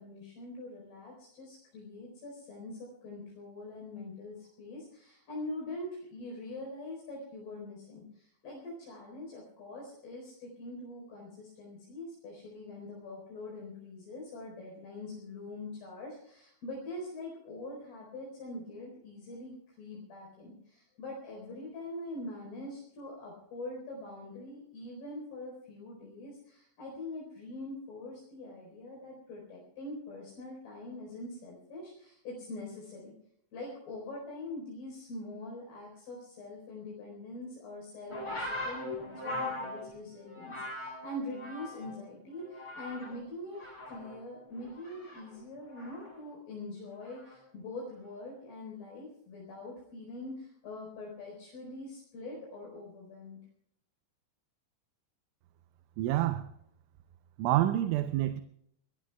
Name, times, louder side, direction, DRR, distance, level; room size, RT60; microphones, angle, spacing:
voice 1, 0.0-33.1 33.5-53.4, left 2 dB, 60° left, 6.4 m, -44 dB
sound 1, 38.1-42.0 42.3-43.2 43.5-46.2 47.0-47.4, left 2 dB, 30° left, 8.7 m, -41 dB
voice 2, 56.0-56.5 57.4-58.4, right 14 dB, 85° right, 3.2 m, -27 dB
25.0 x 20.5 x 2.3 m
omnidirectional pair, 5.4 m